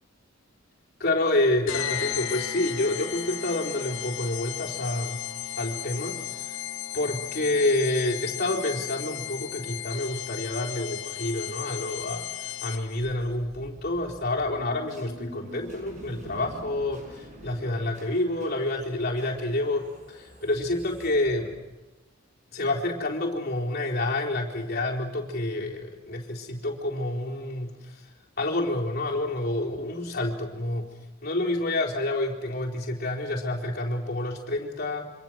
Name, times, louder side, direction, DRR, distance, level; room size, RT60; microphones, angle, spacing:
voice 1, 1.0-5.2 5.6-6.6 6.9-21.5 22.5-28.0 28.4-30.9 31.2-35.1, left 2 dB, 50° left, -2 dB, 4.1 m, -28 dB
sound 1, 1.7-13.1, left 12 dB, 70° left, 0.9 m, -35 dB
sound 2, 13.5-21.9, equal, 35° right, 5.7 m, -47 dB
27.5 x 25.5 x 6.3 m, 1.1 s
head